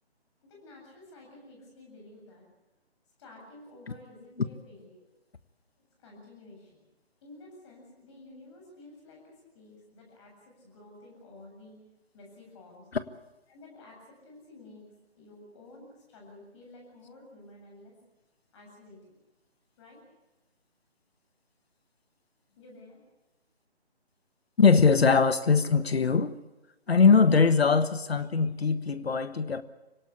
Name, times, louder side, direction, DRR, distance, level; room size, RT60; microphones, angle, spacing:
voice 1, 0.4-2.4 3.2-5.1 6.0-6.8 7.2-11.8 12.1-12.9 13.5-14.9 15.1-18.0 18.5-19.2 19.8-20.0 22.6-23.0, left 2 dB, 25° left, 7.8 m, -51 dB
voice 2, 24.6-26.3 26.9-29.6, left 5 dB, 65° left, 1.4 m, -21 dB
25.5 x 18.0 x 8.7 m
figure-of-eight pair, 150°, 33 cm